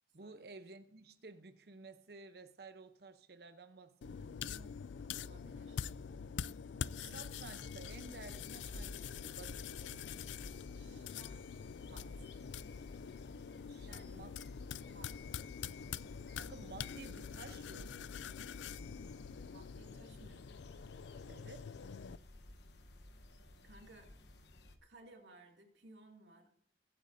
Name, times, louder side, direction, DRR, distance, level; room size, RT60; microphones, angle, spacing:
voice 1, 0.1-4.7 7.0-10.0 13.7-14.3 16.3-17.9 21.3-21.7, right 3 dB, 60° right, 0.9 m, -54 dB
metal brush, 4.0-22.2, left 7 dB, 90° left, 0.4 m, -45 dB
voice 2, 5.1-5.8 10.7-11.4 11.8-12.3 13.8-14.2 14.9-15.2 19.5-20.5 23.6-24.1 24.8-26.5, right 2 dB, 85° right, 2.4 m, -59 dB
sound 1, 7.3-24.8, left 1 dB, 70° left, 1.1 m, -56 dB
22.0 x 8.9 x 2.7 m
head